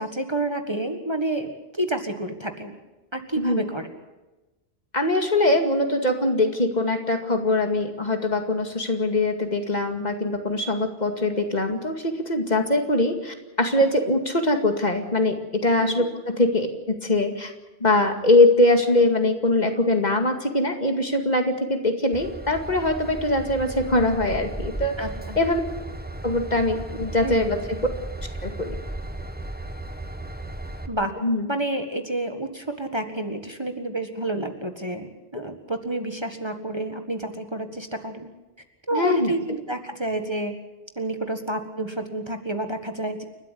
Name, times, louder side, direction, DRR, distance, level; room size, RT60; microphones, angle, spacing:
voice 1, 0.0-2.8 3.1-3.9 15.8-16.0 25.0-25.4 27.2-27.6 30.9-31.1 31.5-38.3 38.9-40.5 41.0-43.2, right 1 dB, 25° right, 6 dB, 1.7 m, -29 dB
voice 2, 4.9-17.5 17.8-25.0 25.4-25.6 26.2-27.8 28.4-28.8 31.2-31.5 38.9-39.3, left 2 dB, 45° left, 5 dB, 2.3 m, -22 dB
Train / Engine, 22.1-30.9, right 1 dB, 10° right, 1.5 m, -35 dB
29.5 x 12.5 x 8.4 m, 1.1 s
omnidirectional pair, 1.1 m